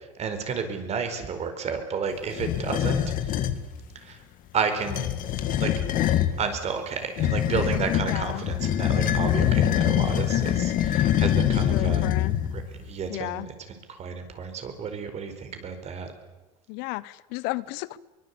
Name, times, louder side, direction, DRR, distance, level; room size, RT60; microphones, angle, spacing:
voice 1, 0.2-3.0 3.9-4.2 4.5-5.1 5.6-5.7 6.4-12.1 12.4-16.1, right 6 dB, 40° right, 4.8 m, -31 dB
sound 1, 2.3-3.6 4.8-6.4 7.2-12.7, left 11 dB, 50° left, 2.1 m, -24 dB
voice 2, 8.0-8.4 11.6-12.3 13.1-13.5 16.7-18.0, left 20 dB, 70° left, 0.9 m, -33 dB
23.5 x 22.0 x 8.5 m
supercardioid pair, 110°, 17 cm